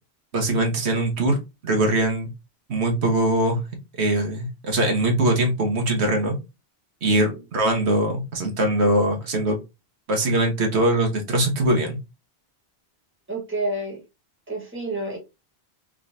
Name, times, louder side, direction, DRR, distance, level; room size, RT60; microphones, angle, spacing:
voice 1, 0.3-1.4 1.6-2.3 2.7-3.6 4.0-6.4 7.0-9.6 10.1-12.0, right 1 dB, 85° right, 3 dB, 1.3 m, -22 dB
voice 2, 7.1-7.4 13.3-14.0 14.5-15.2, right 2 dB, 10° right, 0 dB, 1.3 m, -29 dB
3.8 x 3.2 x 2.6 m, 0.25 s
omnidirectional pair, 1.1 m